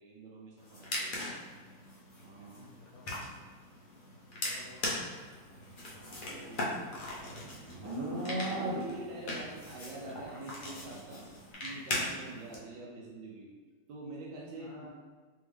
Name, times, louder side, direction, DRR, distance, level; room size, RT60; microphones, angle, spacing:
voice 1, 0.0-1.3 2.2-2.7 6.3-6.8 7.8-11.3 11.6-13.5 13.9-14.9, right 2 dB, 85° right, -3 dB, 1.3 m, -46 dB
sound 1, 0.6-12.5, left 1 dB, 50° left, 0.6 m, -40 dB
voice 2, 2.5-3.3 4.4-4.9 14.5-14.9, left 2 dB, 70° left, -3 dB, 1.0 m, -54 dB
Livestock farm animals working animals, 6.0-9.3, right 1 dB, 60° right, 0.3 m, -38 dB
3.6 x 3.4 x 3.4 m, 1.5 s
omnidirectional pair, 1.9 m